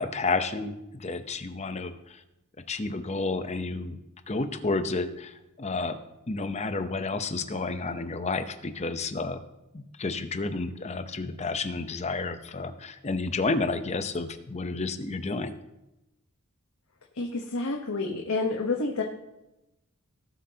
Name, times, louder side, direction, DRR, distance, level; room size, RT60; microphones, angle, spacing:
voice 1, 0.0-2.2 2.7-4.0 4.3-6.0 6.3-9.4 9.7-15.5, left 3 dB, 30° left, 9 dB, 0.7 m, -31 dB
voice 2, 17.1-19.0, left 3 dB, 80° left, 1 dB, 1.1 m, -29 dB
17.5 x 7.7 x 2.8 m, 0.93 s
head